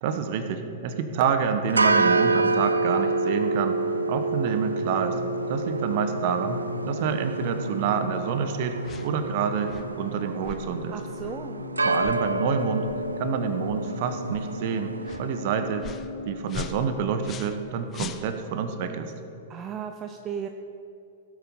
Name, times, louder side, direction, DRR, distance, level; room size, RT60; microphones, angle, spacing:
voice 1, 0.0-3.8 4.1-5.2 5.5-6.6 6.9-8.8 9.0-10.9 11.8-12.9 13.2-14.9 15.2-15.9 16.3-19.1, right 7 dB, 45° right, 8 dB, 1.0 m, -28 dB
sound 1, 1.6-15.5, right 3 dB, 80° right, 0.5 m, -28 dB
sound 2, 4.2-17.1, left 6 dB, 75° left, 1.0 m, -41 dB
sound 3, 8.8-9.1 9.7-9.9 10.4-10.6 11.2-11.4 12.0-12.2 12.8-13.0 13.7-13.8 14.3-14.5 15.0-15.2 15.8-16.1 16.5-17.6 17.9-18.6, left 8 dB, 25° left, 0.6 m, -39 dB
voice 2, 10.9-11.6 19.5-20.5, right 8 dB, 25° right, 6 dB, 0.6 m, -35 dB
17.0 x 8.3 x 5.5 m, 2.7 s
figure-of-eight pair, 100°, 0 cm